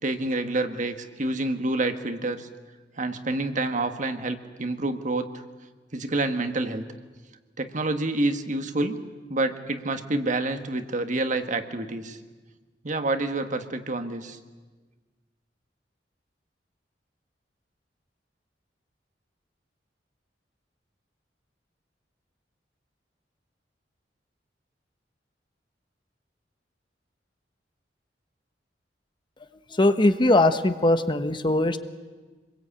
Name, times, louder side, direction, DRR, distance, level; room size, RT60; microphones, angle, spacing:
voice 1, 0.0-2.5 3.0-5.4 5.9-6.8 7.6-9.0 9.3-12.2 12.8-14.4, right 2 dB, 45° right, 8 dB, 1.6 m, -28 dB
voice 2, 29.7-31.8, left 2 dB, 25° left, 9 dB, 1.0 m, -20 dB
26.5 x 21.5 x 8.7 m, 1.3 s
head